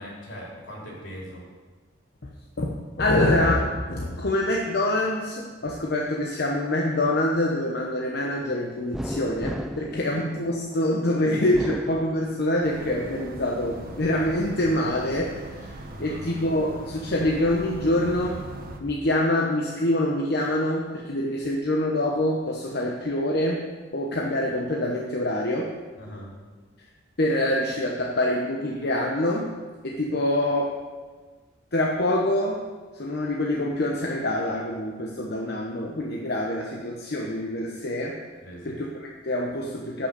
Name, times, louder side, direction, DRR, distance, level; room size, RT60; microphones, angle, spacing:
voice 1, 0.0-1.4 9.9-10.2 15.9-16.2 26.0-26.3 38.4-38.7, equal, 80° left, -3 dB, 3.5 m, -40 dB
voice 2, 2.6-18.4 18.8-23.6 23.9-25.7 27.2-29.5 29.8-30.8 31.7-32.6 32.9-38.2 38.6-40.1, left 1 dB, 60° left, -1 dB, 1.0 m, -25 dB
sound 1, 8.9-10.8 11.4-12.7 13.2-14.1, equal, ahead, 0.4 m, -36 dB
sound 2, 12.6-18.8, right 1 dB, 50° right, 1.1 m, -40 dB
11.0 x 5.9 x 6.7 m, 1.4 s
head